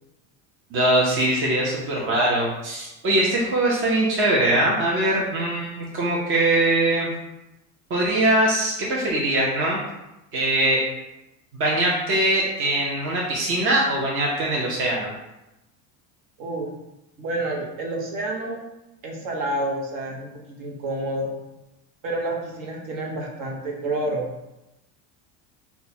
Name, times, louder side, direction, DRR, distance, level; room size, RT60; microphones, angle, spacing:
voice 1, 0.7-7.1 7.9-9.8 10.3-10.8 11.5-15.1, right 1 dB, 30° right, -4 dB, 0.8 m, -22 dB
voice 2, 16.4-16.7 17.2-18.6 19.0-21.3 22.0-24.3, right 1 dB, 50° right, -1 dB, 1.1 m, -29 dB
5.2 x 2.4 x 4.3 m, 0.95 s
cardioid pair, 150°, 43 cm